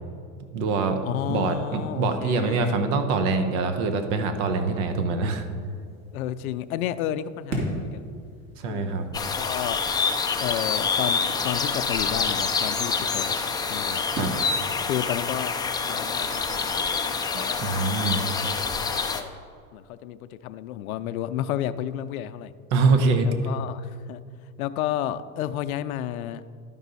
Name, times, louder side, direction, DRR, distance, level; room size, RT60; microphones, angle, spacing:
voice 1, 0.5-5.4 8.6-9.1 14.2-14.3 17.3-18.2 22.7-23.3, right 4 dB, 65° right, 7 dB, 1.1 m, -24 dB
voice 2, 1.0-2.8 6.1-8.0 8.7-9.8 10.4-13.4 13.7-14.0 14.9-15.6 15.9-16.7 17.3-19.4 19.7-22.5 23.2-24.2 24.6-26.4, left 11 dB, 85° left, 12 dB, 0.5 m, -32 dB
sound 1, 5.3-17.9, right 1 dB, 40° right, 2.4 m, -40 dB
sound 2, 9.1-19.2, left 5 dB, 10° left, 0.4 m, -27 dB
12.0 x 5.4 x 4.1 m, 2.2 s
supercardioid pair, 105°, 42 cm